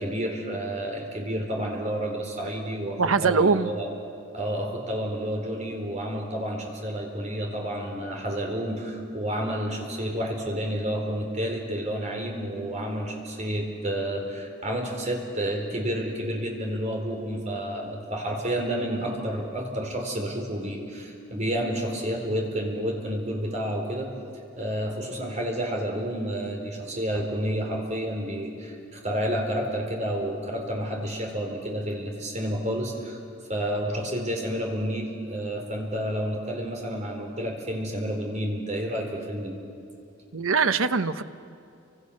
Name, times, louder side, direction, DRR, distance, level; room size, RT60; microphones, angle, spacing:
voice 1, 0.0-3.9 4.3-24.1 24.6-33.2 33.5-39.6, equal, 35° right, 1 dB, 4.3 m, -30 dB
voice 2, 3.0-3.7 40.3-41.2, right 4 dB, 90° right, 11 dB, 0.9 m, -22 dB
30.0 x 25.5 x 6.5 m, 2.5 s
head